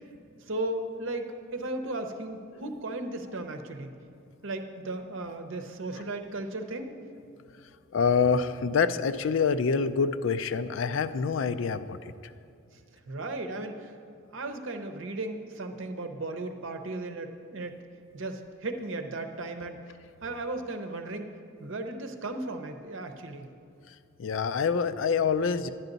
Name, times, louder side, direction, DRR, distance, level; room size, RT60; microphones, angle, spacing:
voice 1, 0.5-3.9 4.4-7.0 12.7-12.8 13.1-13.9 14.3-17.8 18.1-19.8 20.2-21.3 21.6-23.5, right 2 dB, 65° right, 6 dB, 0.7 m, -36 dB
voice 2, 7.9-12.0 24.2-25.7, left 5 dB, 65° left, 12 dB, 0.4 m, -26 dB
10.5 x 10.5 x 4.0 m, 2.4 s
head